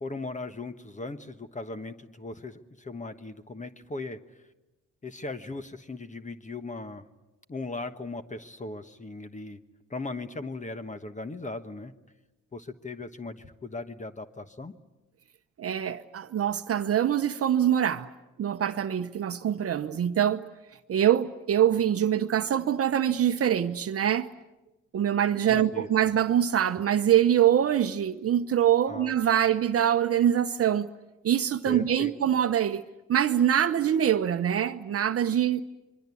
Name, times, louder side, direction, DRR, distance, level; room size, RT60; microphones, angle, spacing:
voice 1, 0.0-4.2 5.0-7.1 7.5-9.6 9.9-11.9 12.5-14.7 25.5-25.9 28.9-29.1 31.7-32.1, left 2 dB, 25° left, 1.3 m, -38 dB
voice 2, 15.6-18.1 18.4-20.5 20.9-24.3 24.9-30.9 31.2-32.8 33.1-35.6, right 10 dB, 50° right, 0.9 m, -24 dB
27.0 x 23.5 x 8.4 m
cardioid pair, 90°, 30 cm